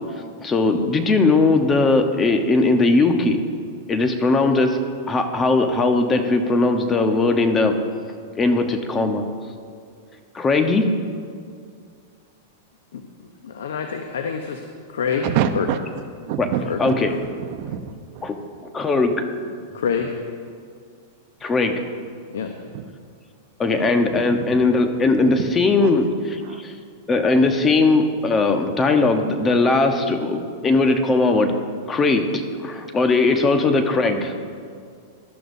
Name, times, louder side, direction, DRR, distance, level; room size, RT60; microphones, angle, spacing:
voice 1, 0.4-3.4 3.9-4.8 5.1-7.8 8.4-9.3 10.3-11.0 16.8-17.1 18.2-18.4 18.7-19.3 21.4-21.8 23.6-26.7 27.1-31.5 31.9-34.3, left 3 dB, 20° left, 6 dB, 1.0 m, -19 dB
voice 2, 12.9-14.6 14.9-15.7 16.7-16.8 17.1-17.2 19.7-20.2 22.3-22.5, left 6 dB, 85° left, 5 dB, 0.8 m, -27 dB
voice 3, 15.1-16.9 17.4-18.4 22.7-22.8 24.1-24.6 25.1-25.5 25.8-25.9 26.4-26.6, right 8 dB, 50° right, 8 dB, 0.9 m, -27 dB
18.5 x 12.0 x 2.7 m, 2.2 s
hypercardioid pair, 135°, 0 cm